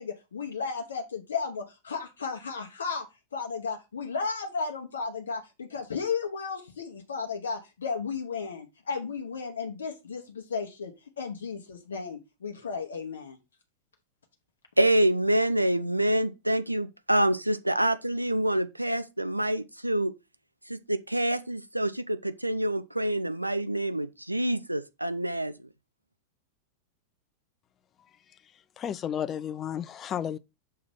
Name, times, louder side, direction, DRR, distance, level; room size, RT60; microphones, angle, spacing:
voice 1, 0.0-3.1 3.3-13.4, left 5 dB, 70° left, 0.8 m, -34 dB
voice 2, 14.8-20.1 20.7-25.7, right 1 dB, 85° right, 0.4 m, -26 dB
voice 3, 28.8-30.4, left 9 dB, 30° left, 0.4 m, -32 dB
6.5 x 2.9 x 5.3 m
figure-of-eight pair, 90°, 0 cm